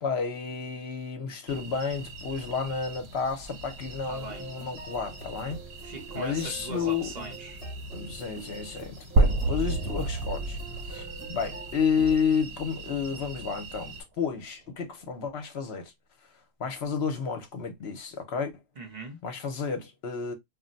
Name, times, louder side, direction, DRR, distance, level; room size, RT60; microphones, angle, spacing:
voice 1, 0.0-5.6 6.1-7.1 7.9-10.6 10.9-15.9 16.6-18.5 19.2-20.3, left 6 dB, 60° left, 0.9 m, -31 dB
sound 1, 1.5-14.0, right 3 dB, 60° right, 1.1 m, -44 dB
voice 2, 4.1-4.5 5.8-7.6 18.8-19.2, right 2 dB, 40° right, 0.8 m, -40 dB
sound 2, 4.2-12.2, right 3 dB, 30° left, 0.9 m, -44 dB
sound 3, 9.2-13.1, right 2 dB, 90° right, 1.0 m, -28 dB
2.5 x 2.1 x 3.7 m
omnidirectional pair, 1.3 m